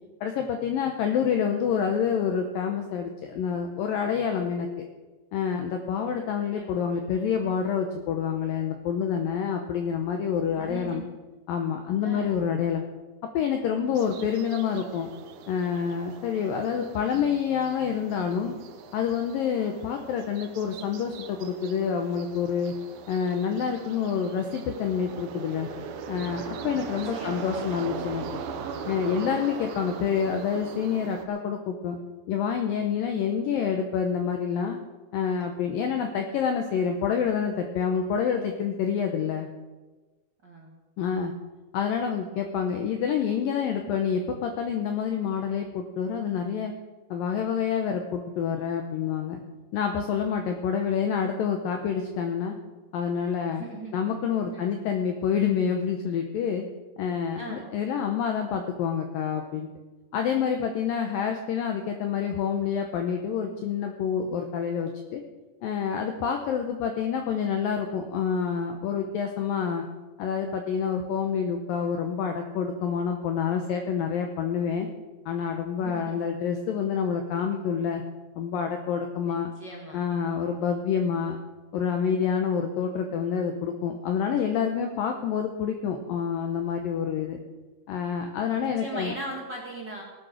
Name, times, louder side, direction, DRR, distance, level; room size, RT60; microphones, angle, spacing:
voice 1, 0.2-4.9 5.3-11.0 11.5-12.8 13.3-15.1 15.5-18.6 18.9-22.7 23.1-25.7 26.1-28.2 28.9-32.0 32.3-34.8 35.1-39.5 41.0-41.3 41.7-46.7 47.1-49.4 49.7-52.6 52.9-53.6 53.9-56.6 57.0-59.7 60.1-65.2 65.6-69.8 70.2-74.9 75.3-78.0 78.4-79.5 79.9-81.4 81.7-87.4 87.9-89.2, left 7 dB, 80° left, 4 dB, 2.1 m, -27 dB
voice 2, 6.5-6.8 10.6-11.1 12.0-12.3 26.7-27.6 40.4-40.8 53.5-53.9 54.5-54.7 57.4-57.7 75.8-76.2 79.2-80.0 88.6-90.0, right 2 dB, 45° right, -2 dB, 1.4 m, -39 dB
sound 1, 14.0-31.3, right 6 dB, 70° right, 2.4 m, -40 dB
18.0 x 9.0 x 6.3 m, 1.2 s
omnidirectional pair, 5.2 m